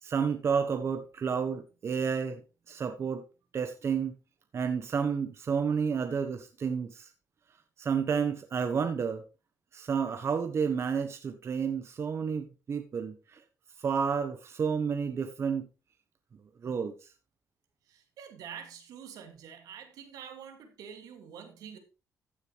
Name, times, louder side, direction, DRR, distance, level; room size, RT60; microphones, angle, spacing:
voice 1, 0.0-2.4 2.7-3.2 3.5-4.1 4.5-7.1 7.8-9.2 9.7-13.4 13.8-15.7 16.6-16.9, right 6 dB, 45° right, 1.1 m, -30 dB
voice 2, 17.9-21.8, right 8 dB, 80° right, 2.3 m, -46 dB
14.5 x 6.6 x 3.2 m
cardioid pair, 90°, 6 cm